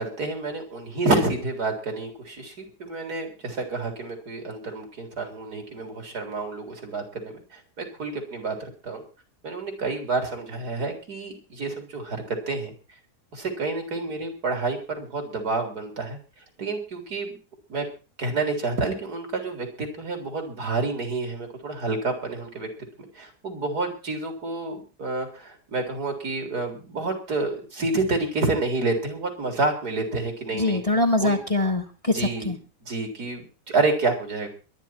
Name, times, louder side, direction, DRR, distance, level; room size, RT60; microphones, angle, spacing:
voice 1, 0.0-9.0 9.4-12.7 13.3-16.2 16.6-17.4 17.7-17.8 18.2-22.7 23.0-30.8 31.2-31.4 32.1-32.5 32.8-34.5, right 3 dB, 70° right, 4 dB, 4.4 m, -29 dB
voice 2, 30.5-32.6, left 2 dB, 20° left, 4 dB, 1.4 m, -23 dB
22.0 x 10.0 x 4.5 m, 0.34 s
omnidirectional pair, 1.7 m